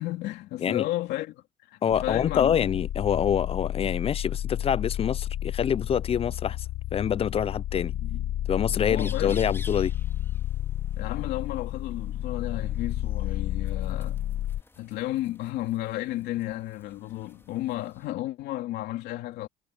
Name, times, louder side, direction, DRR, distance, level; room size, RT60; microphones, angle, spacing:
voice 1, 0.0-2.7 8.0-8.2 8.9-9.4 11.0-14.2 14.8-19.5, left 15 dB, 85° left, 2.9 m, -33 dB
voice 2, 1.8-6.7 6.9-8.0 8.5-9.9, left 8 dB, 35° left, 0.5 m, -26 dB
sound 1, 1.9-14.6, left 12 dB, 65° left, 1.3 m, -31 dB
sound 2, 8.9-18.1, left 2 dB, 15° left, 3.1 m, -52 dB
cardioid pair, 110°, 17 cm